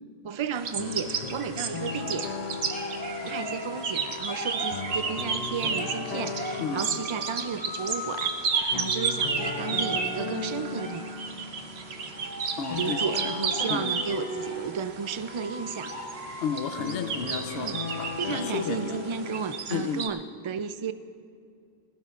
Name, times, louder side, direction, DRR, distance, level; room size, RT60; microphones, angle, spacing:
voice 1, 0.2-2.3 3.2-8.3 8.7-11.1 12.7-15.9 17.5-17.8 18.2-20.9, right 6 dB, 45° right, 11 dB, 0.4 m, -33 dB
sound 1, 0.5-20.1, right 5 dB, 80° right, 1.1 m, -33 dB
sound 2, 0.8-19.6, left 4 dB, 45° left, 0.7 m, -38 dB
sound 3, 2.0-11.2 12.1-18.1, equal, 10° left, 3.6 m, -40 dB
voice 2, 6.6-7.0 12.6-13.2 13.7-13.9 16.4-19.0 19.7-20.1, left 6 dB, 70° left, 8 dB, 0.9 m, -33 dB
20.0 x 18.0 x 2.5 m, 2.3 s
omnidirectional pair, 1.1 m